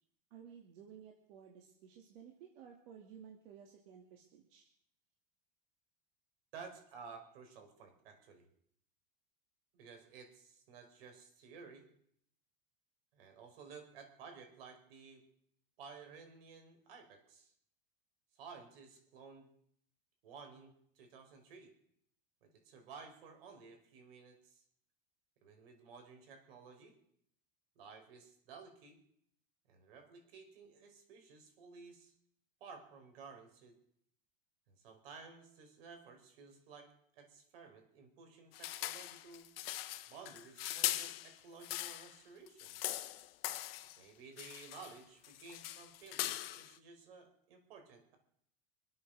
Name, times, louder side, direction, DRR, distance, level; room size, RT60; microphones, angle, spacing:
voice 1, 0.3-4.7, right 8 dB, 65° right, 0 dB, 2.5 m, -55 dB
voice 2, 6.5-8.4 9.7-11.9 13.1-15.2 15.8-17.5 18.3-19.5 20.2-21.7 22.4-24.6 25.4-27.0 27.8-29.0 29.7-32.1 32.6-33.8 34.7-39.5 40.1-42.8 44.0-48.2, right 5 dB, 80° right, 4 dB, 4.6 m, -54 dB
sound 1, 38.5-42.2 42.5-44.0 44.4-45.0 45.2-46.8, left 15 dB, 85° left, 1.0 m, -41 dB
25.5 x 8.7 x 6.4 m, 0.70 s
supercardioid pair, 170°, 29 cm